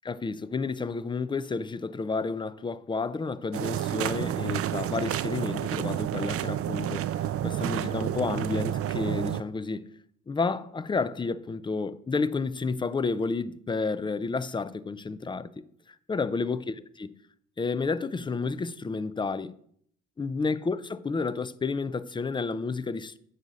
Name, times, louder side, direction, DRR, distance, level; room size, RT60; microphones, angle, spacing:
voice 1, 0.0-9.9 10.3-15.6 16.1-17.1 17.6-19.5 20.2-23.2, left 4 dB, 15° left, 0.4 m, -31 dB
sound 1, 3.5-9.4, right 11 dB, 50° right, 0.4 m, -30 dB
9.0 x 4.1 x 6.2 m
cardioid pair, 90°, 30 cm